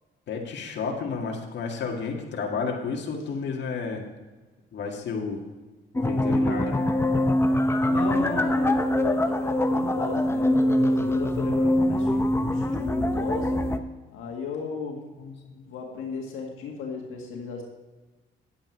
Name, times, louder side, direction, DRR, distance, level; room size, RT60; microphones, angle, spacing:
voice 1, 0.3-4.0 4.7-5.4 5.9-6.8 15.2-15.6, left 5 dB, 65° left, 0 dB, 2.0 m, -31 dB
sound 1, 6.0-13.8, left 1 dB, 10° left, 0.8 m, -23 dB
voice 2, 7.8-10.5 11.0-13.6 14.1-15.0 15.6-17.6, left 4 dB, 85° left, 0 dB, 1.8 m, -35 dB
10.5 x 8.9 x 4.6 m, 1.3 s
cardioid pair, 90°, 20 cm